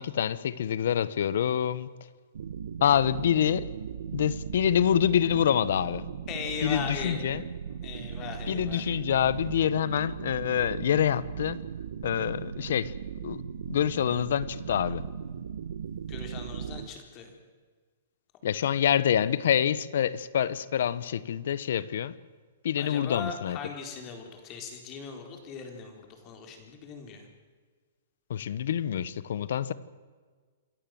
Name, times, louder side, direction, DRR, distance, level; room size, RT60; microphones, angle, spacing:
voice 1, 0.0-1.9 2.8-3.7 4.1-6.0 6.6-7.4 8.5-11.6 12.0-12.9 13.2-13.4 13.7-15.0 18.4-22.1 22.6-23.6 28.3-29.7, left 9 dB, 70° left, 19 dB, 1.0 m, -26 dB
sound 1, 2.3-16.9, right 7 dB, 80° right, 1.1 m, -38 dB
voice 2, 6.3-7.2 7.8-8.9 16.1-17.3 22.8-27.3, left 6 dB, 30° left, 4 dB, 4.1 m, -39 dB
27.0 x 14.5 x 7.8 m, 1.5 s
hypercardioid pair, 150°, 0 cm